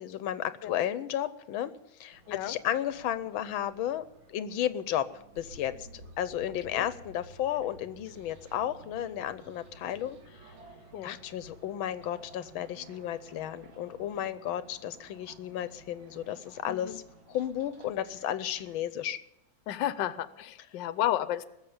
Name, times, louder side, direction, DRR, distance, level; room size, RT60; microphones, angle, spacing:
voice 1, 0.0-1.7 2.0-4.0 4.3-5.9 6.2-10.2 11.0-17.0 17.3-19.2, left 11 dB, 85° left, 14 dB, 1.5 m, -33 dB
sound 1, 2.1-18.8, right 2 dB, 85° right, 2.7 m, -54 dB
voice 2, 16.6-17.0 19.7-21.4, left 12 dB, 70° left, 14 dB, 1.4 m, -32 dB
19.5 x 7.3 x 8.7 m, 0.83 s
omnidirectional pair, 2.1 m